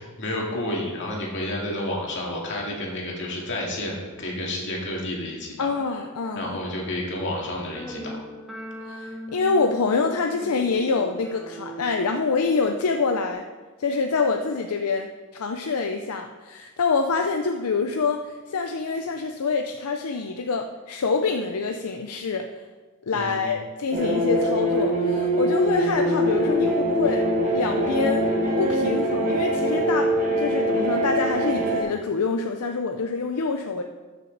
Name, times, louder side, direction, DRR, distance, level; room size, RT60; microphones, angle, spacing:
voice 1, 0.0-5.7 6.4-8.2 23.1-23.5, left 1 dB, 55° left, -2 dB, 2.3 m, -30 dB
voice 2, 5.6-6.6 8.9-13.4 13.8-22.5 23.1-27.3 27.5-28.3 28.6-33.8, left 4 dB, 80° left, 5 dB, 0.6 m, -26 dB
sound 1, 7.7-13.3, right 1 dB, ahead, 2.1 m, -39 dB
sound 2, 23.9-31.8, equal, 35° right, 1.6 m, -23 dB
13.5 x 6.3 x 4.0 m, 1.4 s
head